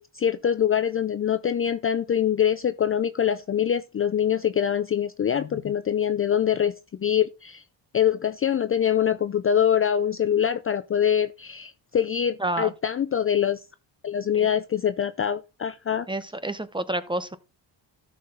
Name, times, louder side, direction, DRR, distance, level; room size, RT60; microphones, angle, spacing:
voice 1, 0.0-7.6 7.9-13.6 14.0-16.1, left 9 dB, 30° left, 0.4 m, -24 dB
voice 2, 12.4-12.7 14.3-14.5 16.1-17.4, right 1 dB, 10° right, 0.8 m, -29 dB
13.0 x 5.9 x 3.9 m
cardioid pair, 110°, 45 cm